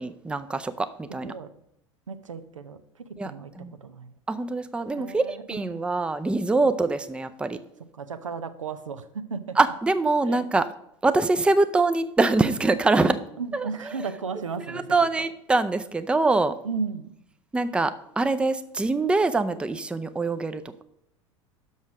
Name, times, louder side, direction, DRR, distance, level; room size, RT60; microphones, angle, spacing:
voice 1, 0.0-1.3 3.2-3.3 3.6-3.7 4.3-7.6 9.6-10.6 11.0-13.2 13.5-13.7 14.7-16.5 17.5-20.8, right 3 dB, 5° right, 11 dB, 0.5 m, -24 dB
voice 2, 2.1-4.2 4.9-5.8 6.6-6.7 7.9-9.6 10.2-10.5 13.4-15.0 16.6-17.1, right 5 dB, 85° right, 10 dB, 0.7 m, -35 dB
6.3 x 5.5 x 6.0 m, 0.77 s
figure-of-eight pair, 80°, 16 cm